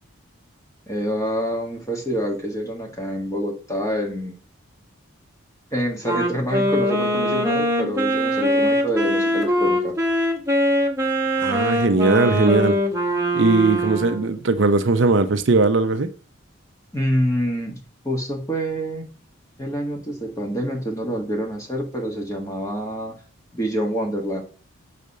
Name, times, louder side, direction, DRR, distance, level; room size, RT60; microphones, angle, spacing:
voice 1, 0.9-4.4 5.7-9.9 16.9-17.8 18.0-19.1 19.6-23.1 23.5-24.4, equal, 15° left, 1.5 m, -26 dB
Wind instrument woodwind instrument, 6.0-14.3, equal, 15° right, 1.2 m, -22 dB
voice 2, 11.4-12.8 13.3-16.1, right 3 dB, 60° right, 0.6 m, -19 dB
6.7 x 4.2 x 6.5 m
head